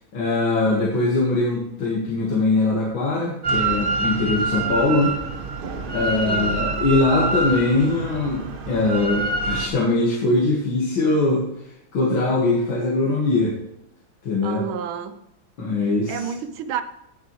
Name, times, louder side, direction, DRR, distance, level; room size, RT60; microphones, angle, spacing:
voice 1, 0.1-5.2 5.9-11.5 11.9-13.6 14.2-14.7 15.6-16.3, left 2 dB, 70° left, -4 dB, 2.4 m, -21 dB
Drill, 3.4-9.7, right 3 dB, 65° right, 0.5 m, -26 dB
voice 2, 6.2-6.7 14.4-15.2 16.1-16.8, right 8 dB, 90° right, 11 dB, 1.5 m, -30 dB
16.0 x 6.8 x 3.1 m, 0.81 s
omnidirectional pair, 2.2 m